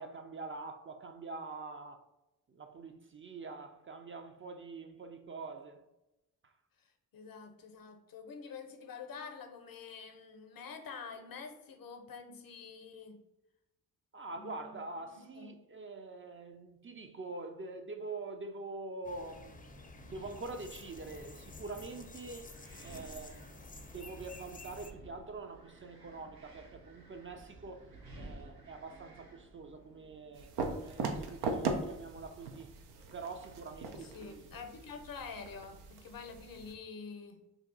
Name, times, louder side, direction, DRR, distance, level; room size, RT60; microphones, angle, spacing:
voice 1, 0.0-2.0 2.5-5.8 6.4-6.5 14.1-22.5 22.8-23.6 23.9-27.8 28.2-32.8 33.1-34.4, right 3 dB, 35° right, 0.4 m, -45 dB
voice 2, 6.8-13.2 14.3-15.6 34.0-37.4, left 5 dB, 60° left, 0.6 m, -47 dB
sound 1, 19.0-24.9, left 3 dB, 20° left, 0.5 m, -51 dB
Wind, 19.2-31.8, right 2 dB, 65° right, 0.9 m, -55 dB
sound 2, 30.3-36.7, right 3 dB, 90° right, 0.5 m, -39 dB
2.7 x 2.3 x 3.8 m
supercardioid pair, 45°, 38 cm